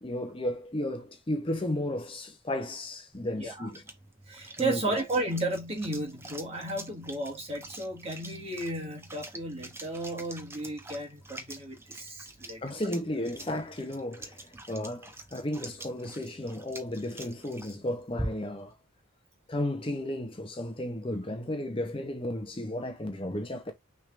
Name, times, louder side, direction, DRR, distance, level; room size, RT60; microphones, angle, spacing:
voice 1, 0.0-3.8 4.6-4.8 12.6-18.7 19.5-23.7, left 1 dB, 25° left, 0.7 m, -34 dB
sound 1, 3.1-18.7, right 1 dB, 10° right, 0.7 m, -45 dB
voice 2, 3.3-3.7 4.3-12.8, right 2 dB, 30° right, 1.9 m, -34 dB
6.1 x 3.4 x 2.5 m
head